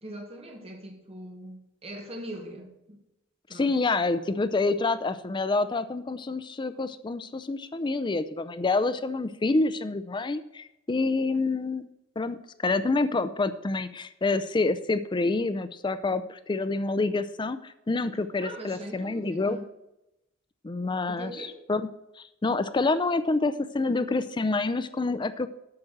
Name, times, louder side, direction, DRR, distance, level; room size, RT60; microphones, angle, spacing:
voice 1, 0.0-3.0 3.5-3.8 18.4-19.7 21.1-21.6, right 1 dB, 30° right, 1.8 m, -41 dB
voice 2, 3.5-11.9 12.2-19.6 20.6-21.3 21.7-21.9 22.2-25.5, left 3 dB, 20° left, 0.4 m, -27 dB
8.7 x 6.0 x 7.8 m
head